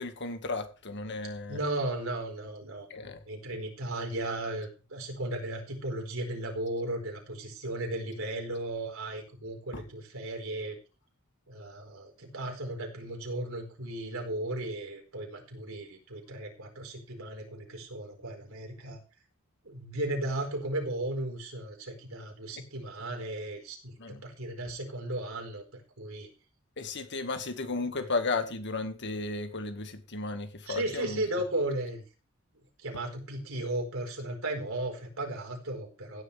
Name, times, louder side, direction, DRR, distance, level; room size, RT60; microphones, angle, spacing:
voice 1, 0.0-1.6 2.9-3.2 9.7-9.8 24.0-24.2 26.8-31.2, left 3 dB, 55° left, 1.8 m, -34 dB
voice 2, 1.5-2.9 3.3-10.8 11.5-19.0 19.6-26.3 30.7-32.0 32.8-36.2, right 1 dB, 80° right, 4.5 m, -35 dB
16.5 x 10.0 x 3.4 m
head